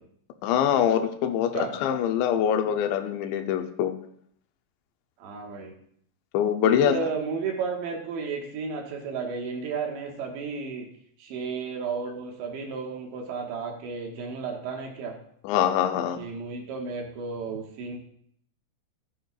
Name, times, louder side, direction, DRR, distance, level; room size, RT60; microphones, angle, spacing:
voice 1, 0.4-3.9 6.3-7.0 15.4-16.2, left 9 dB, 85° left, 7 dB, 2.9 m, -24 dB
voice 2, 5.2-5.7 6.7-10.9 11.2-15.2 16.2-18.0, right 5 dB, 80° right, 1 dB, 3.6 m, -33 dB
14.0 x 11.0 x 2.4 m, 0.67 s
omnidirectional pair, 5.2 m